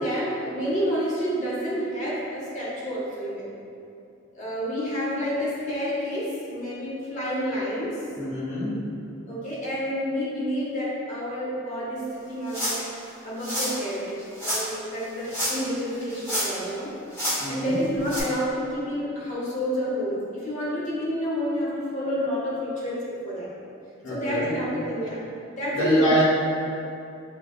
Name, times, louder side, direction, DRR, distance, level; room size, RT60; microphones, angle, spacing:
voice 1, 0.0-3.5 4.3-8.0 9.3-12.8 13.2-23.5 24.1-25.3 25.6-26.2, equal, 40° left, -7 dB, 0.9 m, -29 dB
voice 2, 8.1-8.8 17.4-17.8 24.0-24.6 25.7-26.2, equal, 75° left, -9 dB, 1.4 m, -24 dB
sound 1, 12.5-12.9 13.4-13.7 14.4-14.6 15.2-15.7 16.0-16.7 17.1-17.4 18.1-18.2, equal, 10° left, 0.9 m, -28 dB
6.1 x 2.3 x 2.3 m, 2.6 s
head